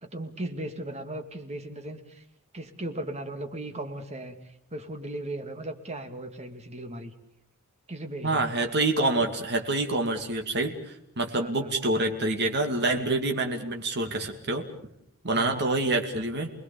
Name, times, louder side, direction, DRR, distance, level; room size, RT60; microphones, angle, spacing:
voice 1, 0.0-2.2 2.5-7.1 7.9-8.5 11.3-11.7 15.3-15.8, right 1 dB, 30° right, 7 dB, 2.2 m, -37 dB
voice 2, 8.2-14.6 15.2-16.5, right 2 dB, 50° right, 4 dB, 2.5 m, -27 dB
29.5 x 20.5 x 7.0 m, 0.72 s
head